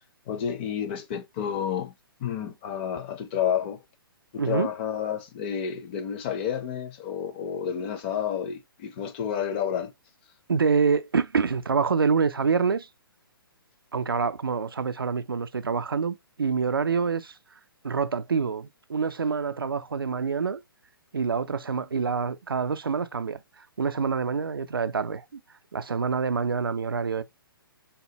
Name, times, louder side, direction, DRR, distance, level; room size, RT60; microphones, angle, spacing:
voice 1, 0.3-1.9 2.2-3.8 4.3-9.9, left 8 dB, 25° left, 0.5 m, -30 dB
voice 2, 4.4-4.7 10.5-12.9 13.9-17.4 17.8-20.6 21.1-25.4 25.7-27.2, right 5 dB, 70° right, 0.4 m, -26 dB
3.4 x 2.2 x 2.8 m
figure-of-eight pair, 125°, 12 cm